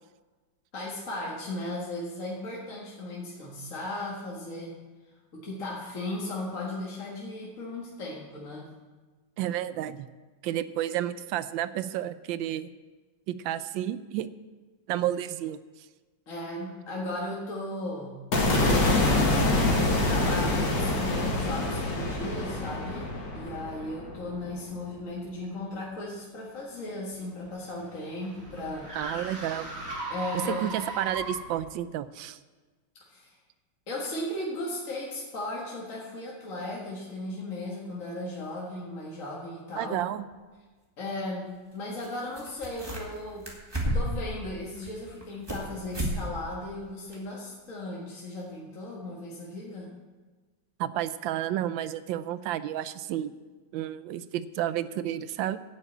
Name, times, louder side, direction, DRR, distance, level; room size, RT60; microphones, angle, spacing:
voice 1, 0.7-4.7 5.3-8.7 16.3-18.2 19.1-28.9 30.1-30.6 33.1-33.4 33.9-40.0 41.0-43.5 43.9-49.9, left 1 dB, 45° left, -5 dB, 2.1 m, -36 dB
voice 2, 9.4-10.1 10.4-12.7 13.3-14.3 14.9-15.6 28.9-29.7 30.5-32.4 39.8-40.3 50.8-53.3 53.7-55.6, right 12 dB, 85° right, 14 dB, 1.3 m, -31 dB
sound 1, 18.3-24.5, left 2 dB, 70° left, 2.5 m, -26 dB
sound 2, 27.1-31.7, right 2 dB, 45° right, 3.2 m, -38 dB
sound 3, 40.3-40.4 42.0-42.1 42.3-43.2 43.4-44.3 44.7-45.6 45.9-46.2 46.5-46.6 47.1-47.2, right 1 dB, 15° right, 2.0 m, -31 dB
12.0 x 6.5 x 8.4 m, 1.3 s
omnidirectional pair, 2.0 m